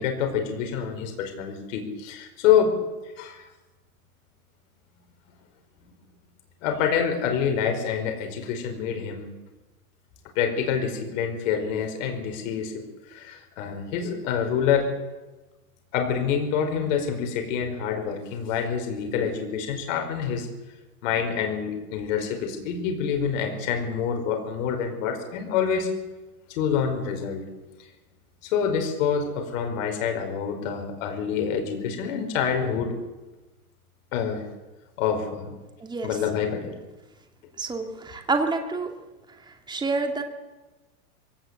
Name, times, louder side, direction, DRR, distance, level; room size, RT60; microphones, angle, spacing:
voice 1, 0.0-2.8 3.2-3.4 6.6-9.3 10.3-12.8 13.1-14.9 15.9-20.5 21.0-25.9 26.5-27.5 28.4-33.0 34.1-34.5 35.0-35.6 36.0-36.7, left 7 dB, 55° left, 5 dB, 4.8 m, -26 dB
voice 2, 37.6-38.9 39.5-40.2, right 3 dB, 10° right, 4 dB, 2.5 m, -28 dB
22.0 x 18.0 x 8.1 m, 1.1 s
supercardioid pair, 140°, 44 cm